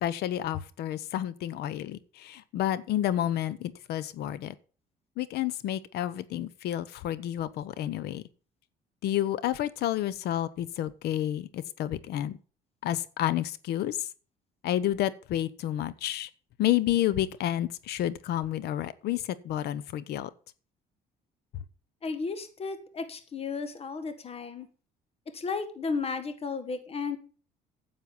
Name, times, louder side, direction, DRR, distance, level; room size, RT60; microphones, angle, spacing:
voice 1, 0.0-4.5 5.2-8.2 9.0-12.4 12.8-14.1 14.6-16.3 16.6-20.3, left 12 dB, 75° left, 1.0 m, -30 dB
voice 2, 22.0-24.7 25.3-27.2, left 4 dB, 35° left, 1.9 m, -34 dB
9.7 x 7.7 x 7.1 m
cardioid pair, 110°, 17 cm